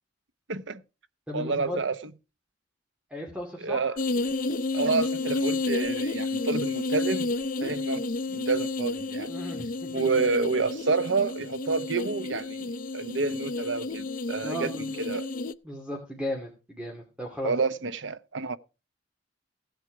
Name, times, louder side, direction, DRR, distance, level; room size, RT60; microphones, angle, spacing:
voice 1, 0.5-0.8 1.3-2.1 3.6-4.0 4.7-7.3 7.6-9.3 9.9-14.7 15.0-15.3 17.4-18.6, right 4 dB, 75° right, 0.8 m, -29 dB
voice 2, 1.3-1.8 3.1-4.0 9.2-10.1 14.4-15.0 15.6-17.5, left 1 dB, 5° right, 2.4 m, -36 dB
sound 1, 4.0-15.5, left 3 dB, 45° left, 0.6 m, -31 dB
16.0 x 7.9 x 4.9 m
head